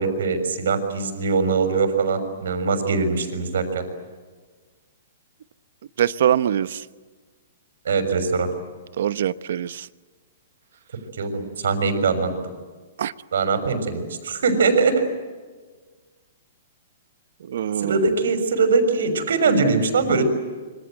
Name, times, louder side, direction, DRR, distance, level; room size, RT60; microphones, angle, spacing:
voice 1, 0.0-3.8 7.8-8.5 11.2-12.3 13.3-15.0 17.8-20.2, right 4 dB, 75° right, 8 dB, 6.4 m, -22 dB
voice 2, 6.0-6.9 9.0-9.9 13.0-13.1 17.4-18.1 19.5-19.7, right 10 dB, 60° right, 14 dB, 1.0 m, -23 dB
27.5 x 25.0 x 7.9 m, 1.4 s
hypercardioid pair, 175°, 0 cm